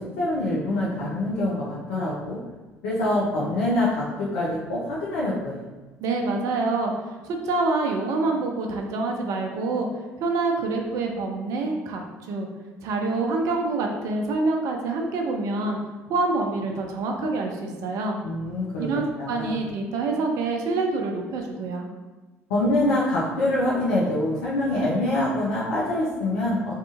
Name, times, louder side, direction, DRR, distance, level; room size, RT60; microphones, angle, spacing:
voice 1, 0.0-2.4 2.8-5.6 18.2-19.6 22.5-26.8, left 1 dB, 70° left, -7 dB, 0.5 m, -25 dB
voice 2, 6.0-6.9 7.2-9.9 10.2-12.0 12.3-12.5 12.8-15.8 16.1-18.2 18.8-21.9, right 3 dB, 55° right, 2 dB, 0.4 m, -26 dB
2.7 x 2.4 x 2.4 m, 1.2 s
figure-of-eight pair, 55°, 7 cm